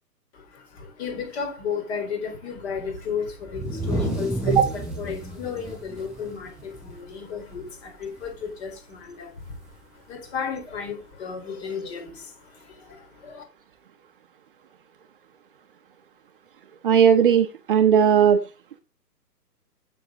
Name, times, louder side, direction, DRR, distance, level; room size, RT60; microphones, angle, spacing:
voice 1, 0.3-4.6 5.0-9.6 9.9-13.4, left 6 dB, 40° left, 4.2 m, -34 dB
sound 1, 3.5-7.2 7.5-7.7 8.0-8.5 9.6-9.7 10.8-10.9, right 1 dB, ahead, 3.7 m, -30 dB
voice 2, 16.8-18.4, right 8 dB, 35° right, 0.8 m, -17 dB
9.8 x 8.0 x 3.9 m
hypercardioid pair, 140°, 49 cm